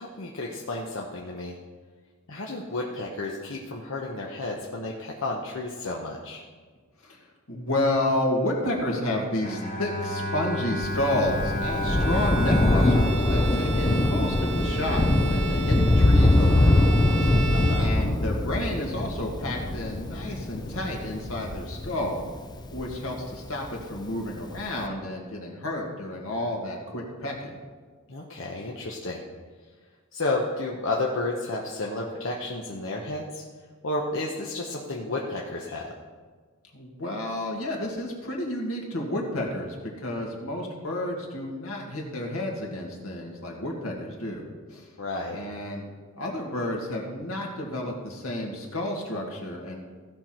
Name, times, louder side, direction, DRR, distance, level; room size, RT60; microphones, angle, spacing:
voice 1, 0.0-1.6 2.3-6.4 17.5-17.9 28.1-29.2 30.1-33.4 33.8-35.9 45.0-45.4, left 2 dB, 65° left, -2 dB, 1.0 m, -32 dB
voice 2, 7.0-22.2 22.7-27.6 36.7-44.9 45.3-45.8 46.2-49.8, left 1 dB, 85° left, -1 dB, 2.0 m, -31 dB
Bowed string instrument, 9.4-14.7, equal, 35° left, 1.3 m, -32 dB
Thunder, 10.8-23.7 24.6-24.7, left 1 dB, 20° left, 0.5 m, -23 dB
Bowed string instrument 2, 11.8-18.5, right 3 dB, 65° right, 2.2 m, -35 dB
15.5 x 5.9 x 4.4 m, 1.5 s
head